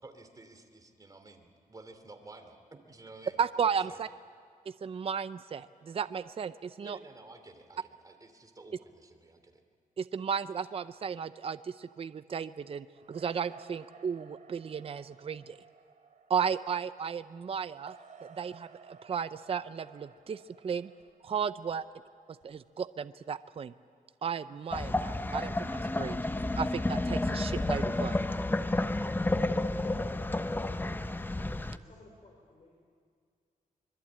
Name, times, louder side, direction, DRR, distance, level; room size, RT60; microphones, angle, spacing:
voice 1, 0.0-3.4 3.9-4.1 6.8-9.6, right 2 dB, 25° right, 6 dB, 2.9 m, -52 dB
voice 2, 3.4-4.1 4.8-7.0 10.0-15.6 16.3-17.9 18.4-20.9 21.2-21.8 22.4-23.7 24.2-26.2 26.6-28.2, right 7 dB, 40° right, 13 dB, 0.6 m, -34 dB
sound 1, 12.9-22.8, right 5 dB, 60° right, 2.8 m, -57 dB
sound 2, 24.7-31.8, left 2 dB, 15° left, 0.8 m, -31 dB
voice 3, 29.6-30.1 30.5-32.8, left 2 dB, 50° left, 0 dB, 4.5 m, -58 dB
25.0 x 22.5 x 8.7 m, 2.1 s
wide cardioid pair, 110°, 14 cm